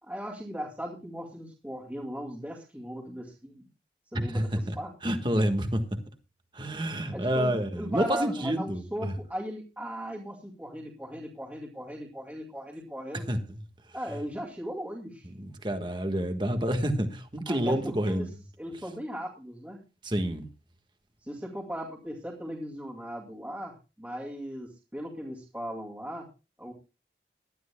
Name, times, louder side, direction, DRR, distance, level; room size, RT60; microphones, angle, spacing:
voice 1, 0.0-3.7 4.1-4.9 7.1-13.3 13.9-15.3 17.5-18.3 18.6-19.8 21.2-26.3 26.6-26.7, equal, 10° right, 2.3 m, -38 dB
voice 2, 4.1-4.8 5.0-5.9 6.5-9.1 13.3-13.4 15.4-18.3 20.0-20.5, equal, 25° right, 1.4 m, -28 dB
20.0 x 12.5 x 2.2 m
head